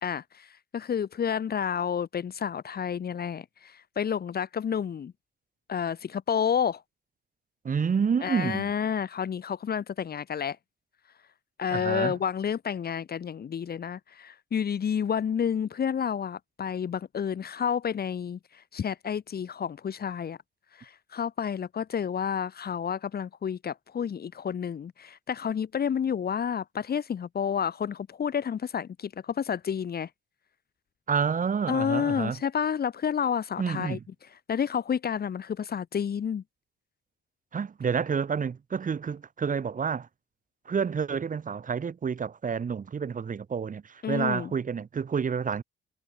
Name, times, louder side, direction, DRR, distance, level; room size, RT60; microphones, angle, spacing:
voice 1, 0.0-5.1 5.7-6.8 8.2-10.6 11.6-20.4 20.8-30.1 31.7-34.0 34.5-36.4 44.0-44.5, left 7 dB, 50° left, 3.2 m, -30 dB
voice 2, 7.6-8.7 11.7-12.1 31.1-32.4 33.6-34.0 37.5-40.1 40.7-45.6, right 6 dB, 40° right, 3.0 m, -29 dB
cardioid pair, 90°, 20 cm